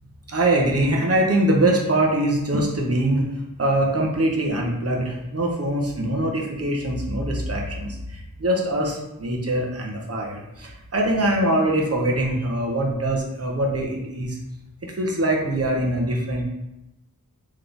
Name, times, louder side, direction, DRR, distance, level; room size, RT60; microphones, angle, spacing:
voice 1, 0.3-3.3 3.6-14.4 14.8-16.4, right 1 dB, 40° right, -1 dB, 1.0 m, -23 dB
3.6 x 3.2 x 3.9 m, 0.90 s
wide cardioid pair, 75°, 35 cm